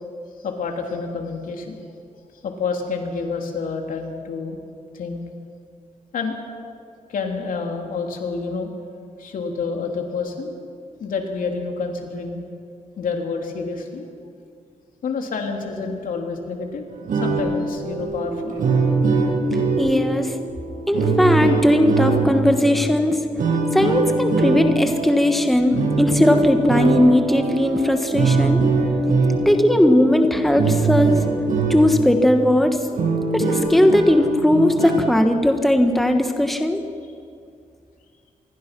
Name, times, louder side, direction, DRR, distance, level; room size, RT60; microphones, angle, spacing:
voice 1, 0.4-1.7 2.4-4.6 4.9-5.2 6.1-6.4 7.1-8.7 9.2-10.5 11.0-12.4 13.0-14.1 15.0-16.8 17.1-18.6, left 4 dB, 80° left, 2 dB, 3.2 m, -28 dB
sound 1, 16.9-32.1 32.5-32.6 32.9-35.1, right 3 dB, 75° right, 7.6 m, -22 dB
voice 2, 19.8-20.3 20.9-23.2 23.7-28.6 29.4-31.2 31.7-32.8 33.3-36.8, left 1 dB, ahead, 5 dB, 1.2 m, -18 dB
26.5 x 21.5 x 6.1 m, 2.3 s
wide cardioid pair, 165°, 14 cm